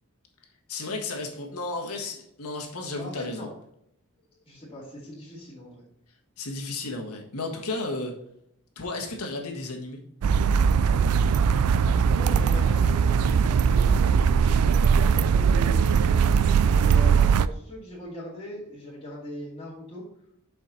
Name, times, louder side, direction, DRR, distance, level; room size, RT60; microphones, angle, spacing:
voice 1, 0.7-3.5 6.4-8.2 8.7-10.0, left 2 dB, 85° left, 2 dB, 1.6 m, -33 dB
voice 2, 3.0-3.5 4.2-5.9 11.1-20.1, left 1 dB, 25° left, -12 dB, 2.5 m, -40 dB
sound 1, 10.2-17.5, right 6 dB, 85° right, 0.3 m, -20 dB
7.2 x 5.1 x 4.0 m, 0.75 s
head